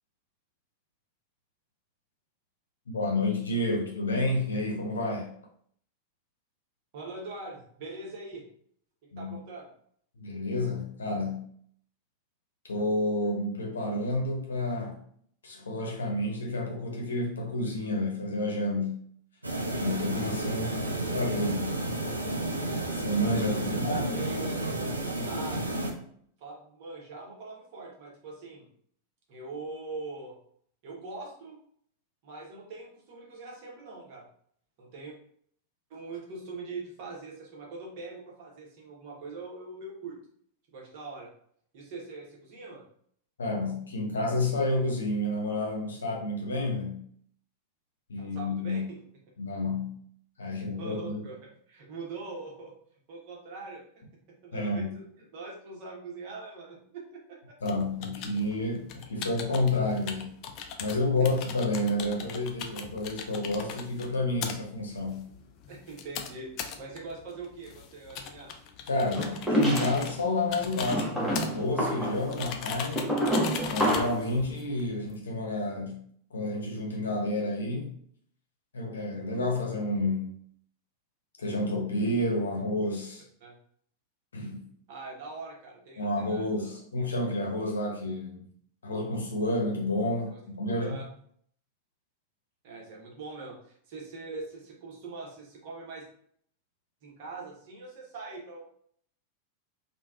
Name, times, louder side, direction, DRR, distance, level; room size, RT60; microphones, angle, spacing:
voice 1, 2.9-5.3 9.1-9.3 10.2-11.5 12.7-15.0 15.4-19.0 19.8-21.7 22.9-24.1 43.4-47.1 48.1-48.8 49.4-50.0 50.4-51.2 54.5-55.0 57.6-60.3 60.8-65.3 68.9-73.1 73.7-76.0 76.3-78.0 78.7-80.3 81.4-83.2 84.3-84.6 86.0-88.4 88.8-90.9, left 2 dB, 70° left, 0.7 m, -30 dB
voice 2, 6.9-8.4 9.2-9.7 20.8-21.2 23.6-23.7 24.1-24.6 25.2-26.0 26.4-28.7 29.3-30.4 30.8-31.6 32.2-34.2 34.8-35.1 35.9-40.2 40.7-41.3 41.7-42.8 48.2-49.0 50.5-52.7 53.1-53.8 54.3-57.6 58.1-58.4 60.8-61.3 65.7-68.5 83.4-83.5 84.9-86.8 90.2-90.4 90.7-91.1 92.6-96.1 97.0-98.7, right 3 dB, 45° right, 0.9 m, -42 dB
sound 1, 19.4-25.9, right 1 dB, 85° right, 0.4 m, -31 dB
sound 2, 57.6-75.2, left 6 dB, 40° left, 0.3 m, -41 dB
sound 3, 69.1-70.2 70.8-74.3, equal, ahead, 0.8 m, -28 dB
3.3 x 2.2 x 2.3 m
figure-of-eight pair, 90°, 0 cm